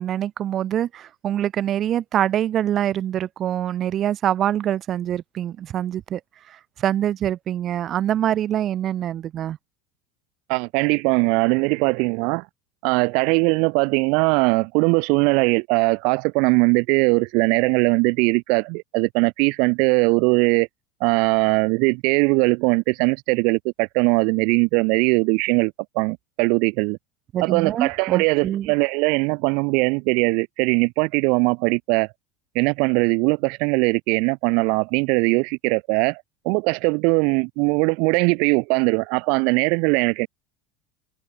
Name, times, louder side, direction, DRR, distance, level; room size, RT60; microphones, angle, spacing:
voice 1, 0.0-6.2 6.8-9.6 27.3-28.7, right 11 dB, 40° right, 2.2 m, -24 dB
voice 2, 10.5-12.5 12.8-20.7 21.0-27.0 27.4-32.1 32.5-40.3, right 33 dB, 65° right, 1.4 m, -20 dB
supercardioid pair, 100°, 0 cm